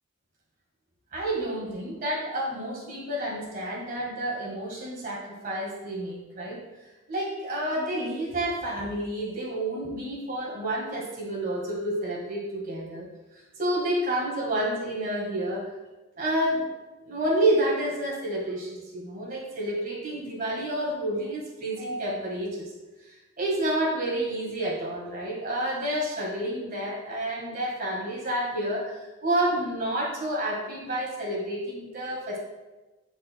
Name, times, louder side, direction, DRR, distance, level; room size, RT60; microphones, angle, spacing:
voice 1, 1.1-6.6 7.1-13.1 13.6-15.7 16.2-16.7 17.1-22.7 23.4-32.4, right 1 dB, 45° right, -3 dB, 1.8 m, -29 dB
8.2 x 5.1 x 2.3 m, 1.1 s
head